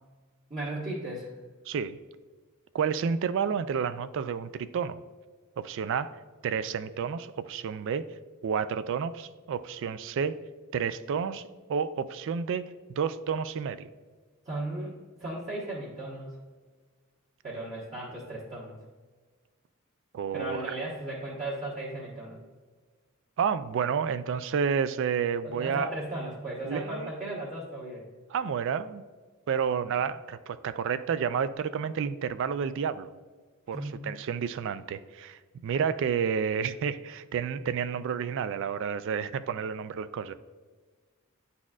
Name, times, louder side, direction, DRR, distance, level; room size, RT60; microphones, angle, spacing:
voice 1, 0.5-1.3 14.4-16.4 17.4-18.8 20.3-22.4 25.4-28.1 33.7-34.0, right 1 dB, 35° right, -8 dB, 1.1 m, -36 dB
voice 2, 1.7-2.0 2.7-5.0 5.6-6.1 6.4-8.0 8.4-10.4 10.7-13.9 20.1-20.6 23.4-25.9 26.6-27.1 28.3-29.0 29.5-33.1 33.7-40.3, right 7 dB, 60° right, 13 dB, 0.3 m, -30 dB
9.9 x 4.2 x 2.4 m, 1.4 s
head